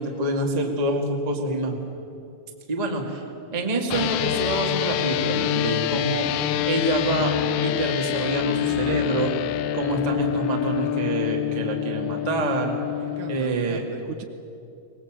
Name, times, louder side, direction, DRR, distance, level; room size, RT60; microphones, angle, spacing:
voice 1, 0.0-1.7 2.7-3.2 3.5-6.3 6.6-7.3 7.6-9.3 9.7-12.7 13.3-13.8, right 2 dB, 20° right, 1 dB, 1.2 m, -26 dB
sound 1, 3.9-13.4, left 13 dB, 80° left, 2.5 m, -26 dB
voice 2, 12.9-14.3, right 9 dB, 75° right, 7 dB, 2.2 m, -39 dB
23.0 x 19.5 x 7.5 m, 2.6 s
omnidirectional pair, 4.3 m